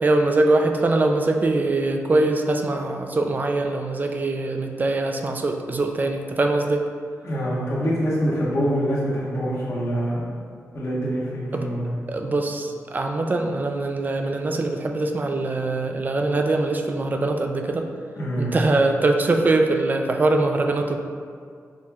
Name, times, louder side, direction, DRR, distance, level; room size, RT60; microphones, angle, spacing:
voice 1, 0.0-6.8 11.5-11.7 12.1-17.8 18.4-21.0, right 2 dB, 30° right, 4 dB, 0.3 m, -22 dB
voice 2, 7.2-10.2 10.7-11.8 18.1-18.5, equal, 55° left, -10 dB, 1.5 m, -25 dB
6.1 x 2.8 x 2.4 m, 2.1 s
wide cardioid pair, 100°, 6 cm